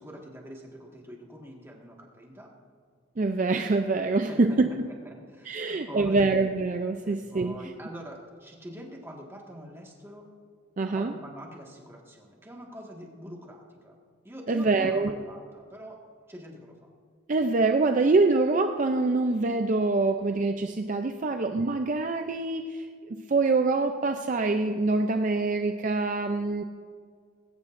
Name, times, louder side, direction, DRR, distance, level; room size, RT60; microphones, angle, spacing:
voice 1, 0.0-2.5 4.1-4.8 5.1-6.3 7.0-10.3 10.9-14.0 14.2-16.0 16.3-16.9 21.2-21.4, equal, 10° right, -1 dB, 1.7 m, -45 dB
voice 2, 3.2-4.9 5.5-7.5 10.8-11.2 14.5-15.1 17.3-26.6, right 3 dB, 40° right, 6 dB, 0.5 m, -25 dB
20.5 x 17.0 x 2.6 m, 2.1 s
head